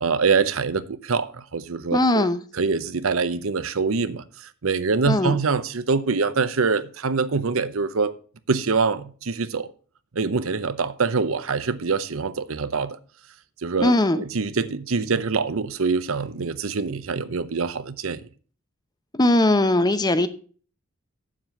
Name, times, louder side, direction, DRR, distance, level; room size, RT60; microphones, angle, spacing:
voice 1, 0.0-2.3 2.6-8.1 8.5-9.7 10.1-13.0 13.6-18.2, right 4 dB, 75° right, 0.8 m, -24 dB
voice 2, 1.9-2.4 5.1-5.4 13.8-14.2 19.1-20.3, left 1 dB, 20° left, 0.8 m, -19 dB
7.6 x 7.4 x 6.8 m
head